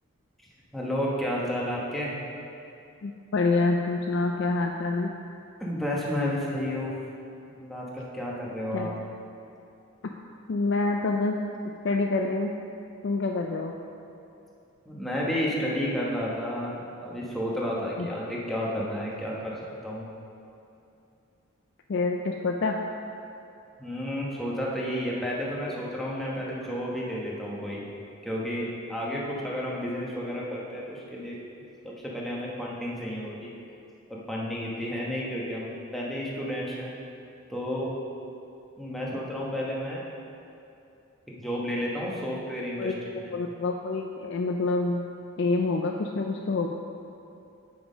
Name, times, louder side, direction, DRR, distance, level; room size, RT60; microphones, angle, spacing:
voice 1, 0.7-2.1 5.6-6.9 7.5-8.9 14.8-16.7 17.0-19.5 19.8-20.1 23.8-27.8 28.2-31.4 31.8-33.5 34.1-36.9 37.5-37.9 38.8-40.0 41.3-43.3, equal, ahead, -5 dB, 1.1 m, -31 dB
voice 2, 3.0-5.1 8.7-8.9 10.5-11.4 11.8-12.5 13.0-13.7 18.0-18.1 21.9-22.8 42.8-43.0 43.3-45.0 45.4-46.7, left 3 dB, 55° left, 2 dB, 0.4 m, -26 dB
7.3 x 6.0 x 5.1 m, 2.7 s
head